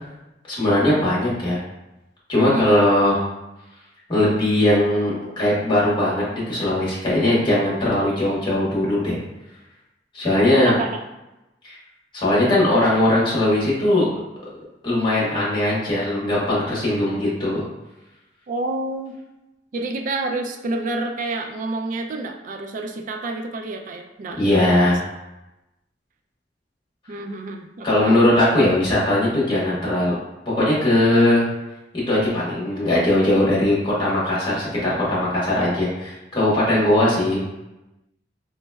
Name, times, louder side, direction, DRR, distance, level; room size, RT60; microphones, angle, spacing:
voice 1, 0.5-1.6 2.3-3.2 4.1-9.2 10.1-10.7 11.6-11.8 12.1-14.1 14.8-17.6 24.4-25.0 27.8-30.1 30.6-31.5 32.1-37.4, left 1 dB, 30° left, -7 dB, 1.4 m, -19 dB
voice 2, 2.4-2.9 10.6-11.0 18.5-19.2 19.7-25.0 27.1-28.1 36.7-36.8, right 2 dB, 45° right, 4 dB, 0.4 m, -29 dB
4.0 x 3.1 x 2.3 m, 0.97 s
head